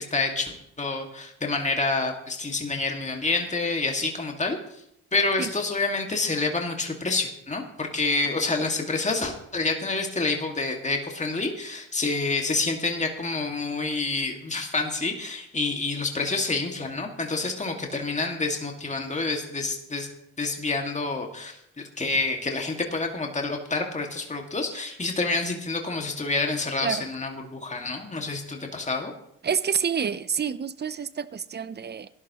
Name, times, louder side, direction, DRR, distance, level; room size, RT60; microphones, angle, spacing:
voice 1, 0.0-4.6 5.1-20.1 20.4-29.1, left 3 dB, 20° left, 2.2 m, -28 dB
voice 2, 29.4-32.1, right 7 dB, 30° right, 0.7 m, -28 dB
17.0 x 11.5 x 3.1 m
supercardioid pair, 60°, 34 cm